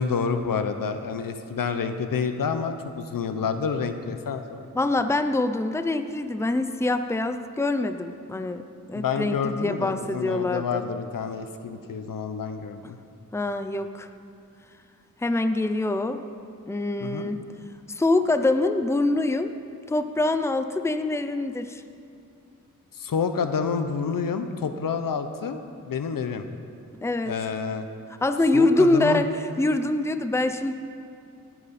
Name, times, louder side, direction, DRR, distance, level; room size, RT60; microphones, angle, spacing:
voice 1, 0.0-4.6 8.9-13.0 17.0-17.3 22.9-25.6 25.8-26.5 27.3-27.9 28.5-29.2, left 6 dB, 70° left, 8 dB, 0.9 m, -28 dB
voice 2, 4.7-8.6 8.9-10.8 13.3-14.1 15.2-16.2 16.7-17.5 17.9-19.5 19.9-21.8 27.0-27.4 28.2-30.7, left 2 dB, 10° left, 9 dB, 0.7 m, -24 dB
18.5 x 9.2 x 4.3 m, 2.5 s
cardioid pair, 60°, 35 cm